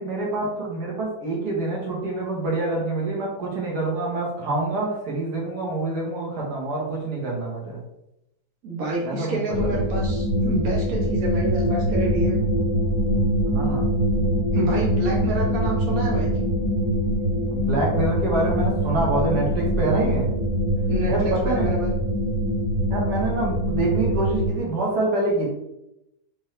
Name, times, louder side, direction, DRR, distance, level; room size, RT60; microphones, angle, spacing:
voice 1, 0.0-7.8 9.0-9.8 13.5-13.8 17.5-20.3 21.1-21.7 22.9-25.5, right 2 dB, 85° right, -3 dB, 1.9 m, -26 dB
voice 2, 8.6-12.4 14.5-16.3 20.9-21.9, right 1 dB, 60° right, -3 dB, 1.5 m, -28 dB
sound 1, 9.5-24.5, equal, 5° left, 0.5 m, -23 dB
5.3 x 3.1 x 3.2 m, 0.86 s
omnidirectional pair, 1.7 m